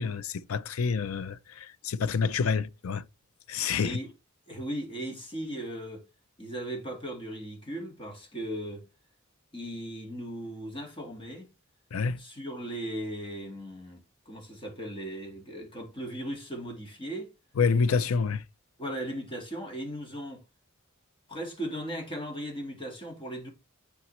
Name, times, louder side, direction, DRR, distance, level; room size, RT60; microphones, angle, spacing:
voice 1, 0.0-3.0 3.5-4.0 11.9-12.2 17.6-18.4, left 5 dB, 75° left, 0.5 m, -28 dB
voice 2, 4.5-6.0 6.4-8.9 9.5-11.5 12.2-17.3 18.8-20.4 21.3-23.5, right 1 dB, 25° left, 1.9 m, -37 dB
8.1 x 5.7 x 3.1 m
head